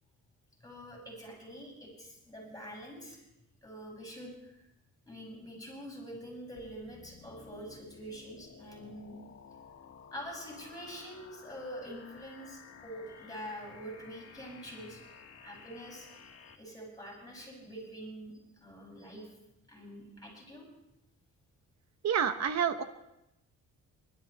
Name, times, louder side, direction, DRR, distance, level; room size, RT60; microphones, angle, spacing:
voice 1, 0.6-3.2 3.6-4.5 5.1-9.2 10.1-15.0 15.4-16.3 16.6-18.3 18.6-19.3 19.7-20.7, equal, 10° left, -2 dB, 7.5 m, -45 dB
sound 1, 6.6-16.6, left 6 dB, 50° left, 1.9 m, -54 dB
voice 2, 22.0-22.8, right 7 dB, 60° right, 10 dB, 1.1 m, -28 dB
29.0 x 12.5 x 3.5 m, 0.89 s
cardioid pair, 90°, 30 cm